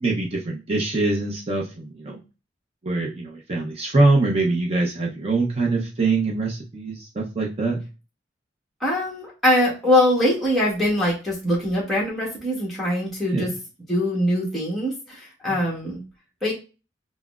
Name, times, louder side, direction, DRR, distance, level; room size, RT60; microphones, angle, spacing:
voice 1, 0.0-2.2 2.8-7.8 13.3-13.5 15.5-15.6, right 3 dB, 30° right, -2 dB, 0.6 m, -23 dB
voice 2, 8.8-13.5 13.9-16.0 16.4-16.5, left 1 dB, ahead, -6 dB, 1.0 m, -22 dB
5.7 x 2.0 x 2.4 m, 0.31 s
head